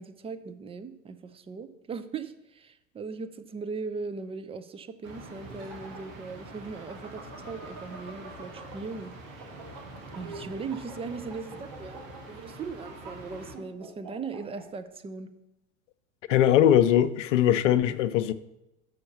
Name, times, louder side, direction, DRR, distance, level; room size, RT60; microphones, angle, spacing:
voice 1, 0.0-9.5 10.1-12.0 12.3-15.3, right 4 dB, 15° right, 0.5 m, -39 dB
sound 1, 5.0-13.5, right 2 dB, 80° right, 1.5 m, -45 dB
sound 2, 5.3-8.9 9.3-14.6, right 4 dB, 50° right, 3.3 m, -46 dB
voice 2, 16.3-18.3, left 10 dB, 65° left, 0.6 m, -21 dB
6.4 x 5.4 x 7.1 m
hypercardioid pair, 85°, 39 cm